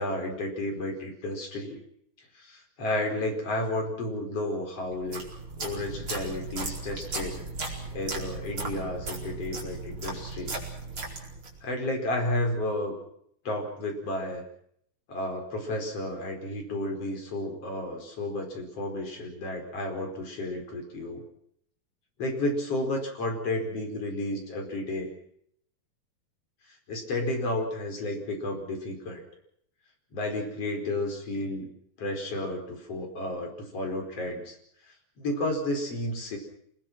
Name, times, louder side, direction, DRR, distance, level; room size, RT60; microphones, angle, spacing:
voice 1, 0.0-1.8 2.4-5.2 5.6-10.6 11.6-13.0 13.5-14.4 15.1-21.2 22.2-25.1 26.9-29.2 30.1-31.7 32.0-34.6 35.2-36.4, left 1 dB, 40° left, 2 dB, 5.8 m, -32 dB
sound 1, 4.9-11.6, right 3 dB, 35° right, 5.3 m, -36 dB
28.5 x 21.0 x 6.2 m, 0.70 s
omnidirectional pair, 4.1 m